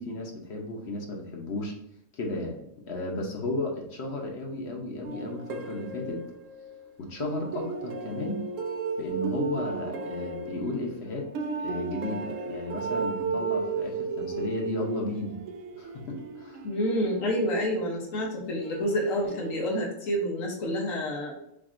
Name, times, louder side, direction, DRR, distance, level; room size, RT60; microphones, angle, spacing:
voice 1, 0.0-1.7 2.1-6.2 7.0-8.4 9.0-11.3 11.6-15.4 15.7-16.6, left 2 dB, 60° left, 0 dB, 1.1 m, -34 dB
sound 1, 5.0-6.8 7.2-18.1 18.6-19.6, right 4 dB, 85° right, 1.0 m, -35 dB
voice 2, 16.6-21.3, equal, 85° left, -1 dB, 1.3 m, -28 dB
7.1 x 2.6 x 2.5 m, 0.78 s
omnidirectional pair, 1.3 m